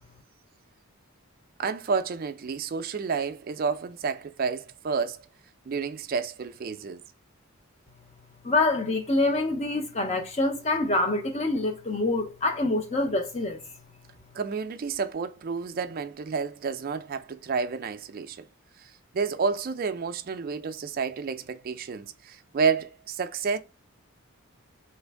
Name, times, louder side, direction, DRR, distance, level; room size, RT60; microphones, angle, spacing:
voice 1, 1.6-5.3 5.7-7.0 14.3-18.4 18.8-23.6, right 5 dB, 40° right, 0.3 m, -30 dB
voice 2, 8.4-13.6, left 2 dB, 30° left, 0.6 m, -26 dB
3.2 x 2.5 x 3.3 m
head